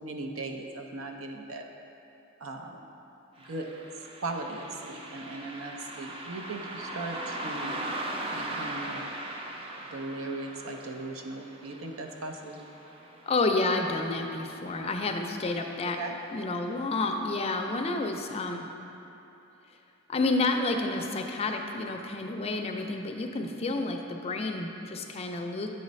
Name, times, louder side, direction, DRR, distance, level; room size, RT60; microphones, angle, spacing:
voice 1, 0.0-1.6 2.4-2.8 3.4-3.7 4.2-7.8 8.3-9.0 9.9-12.6 15.8-16.2, right 2 dB, 90° right, 3 dB, 0.6 m, -38 dB
Car passing by, 3.4-14.2 14.5-14.6 15.5-15.7 16.2-16.3 16.8-16.9, right 1 dB, 25° right, 0.5 m, -39 dB
voice 2, 13.3-16.0 16.3-18.7 20.1-25.7, left 3 dB, 30° left, 4 dB, 0.4 m, -30 dB
7.6 x 3.2 x 5.1 m, 3.0 s
head